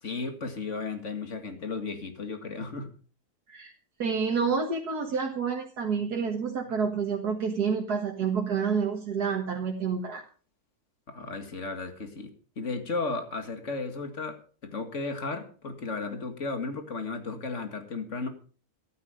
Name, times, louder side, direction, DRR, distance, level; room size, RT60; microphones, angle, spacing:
voice 1, 0.0-2.9 11.1-12.3 12.6-18.3, left 3 dB, 50° left, 7 dB, 2.3 m, -34 dB
voice 2, 4.0-10.2, right 5 dB, 85° right, 1 dB, 2.2 m, -28 dB
14.0 x 12.5 x 5.1 m, 0.39 s
omnidirectional pair, 1.6 m